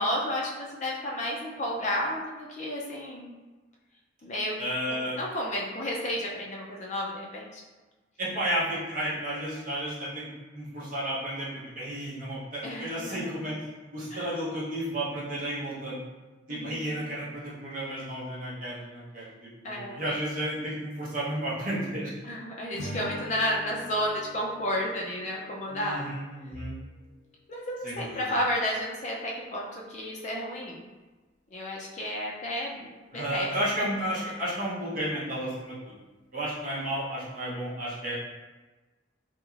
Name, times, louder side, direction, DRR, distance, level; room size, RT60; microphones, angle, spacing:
voice 1, 0.0-3.3 4.2-4.5 4.9-7.6 12.6-13.5 14.1-14.2 16.5-17.0 19.6-20.2 22.2-26.1 27.5-30.8 31.5-33.5, equal, 40° left, -3 dB, 0.4 m, -32 dB
voice 2, 4.6-5.2 8.2-10.3 10.5-16.0 16.5-22.1 25.7-26.8 27.8-28.3 33.1-35.9 36.3-38.1, right 1 dB, 45° right, -7 dB, 0.8 m, -32 dB
Strum, 22.7-27.2, left 1 dB, 80° left, 0.8 m, -44 dB
2.9 x 2.8 x 2.4 m, 1.2 s
head